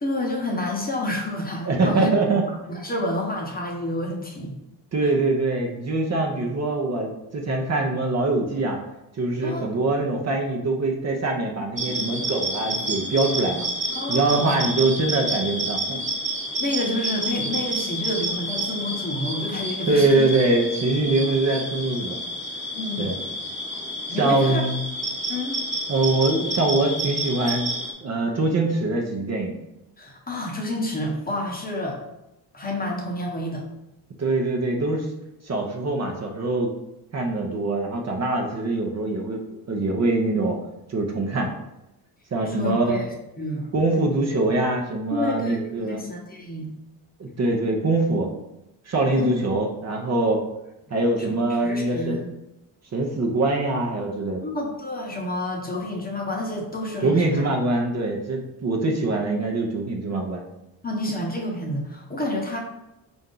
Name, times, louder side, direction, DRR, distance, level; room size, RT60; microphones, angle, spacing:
voice 1, 0.0-2.1 2.7-4.6 9.4-9.7 13.9-14.6 16.6-20.3 21.1-21.2 22.7-23.1 24.1-24.6 25.3-25.5 30.0-32.0 32.5-33.7 42.4-43.1 43.4-43.7 45.1-46.7 49.1-49.4 51.6-52.3 54.4-57.5 60.8-62.6, left 1 dB, 20° left, 0 dB, 0.9 m, -29 dB
voice 2, 1.7-2.4 4.9-8.8 9.2-13.7 14.1-16.0 19.9-22.2 23.0-23.2 24.1-24.8 25.9-27.7 28.0-29.5 34.2-35.1 35.4-36.7 37.1-39.4 39.7-40.6 40.9-41.5 42.3-43.0 43.7-46.0 47.2-48.3 48.9-50.4 50.9-52.2 52.9-54.4 57.0-60.4, right 2 dB, 40° right, 1 dB, 0.7 m, -23 dB
sound 1, 11.8-27.9, right 1 dB, 15° right, 1.0 m, -29 dB
4.3 x 2.6 x 3.7 m, 0.90 s
cardioid pair, 95°, 43 cm